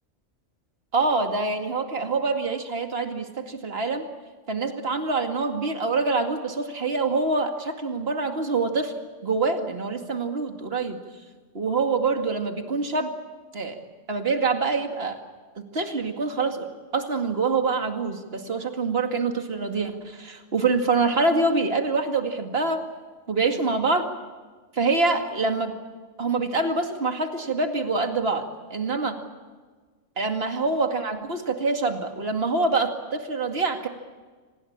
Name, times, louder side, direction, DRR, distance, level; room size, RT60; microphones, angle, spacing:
voice 1, 0.9-4.1 4.5-8.9 9.2-11.0 11.5-13.1 13.5-13.8 14.1-15.2 15.6-16.7 16.9-22.8 23.3-24.1 24.7-25.7 26.2-29.2 30.2-33.9, right 3 dB, 55° right, 5 dB, 2.4 m, -25 dB
26.5 x 19.5 x 8.8 m, 1.4 s
omnidirectional pair, 1.3 m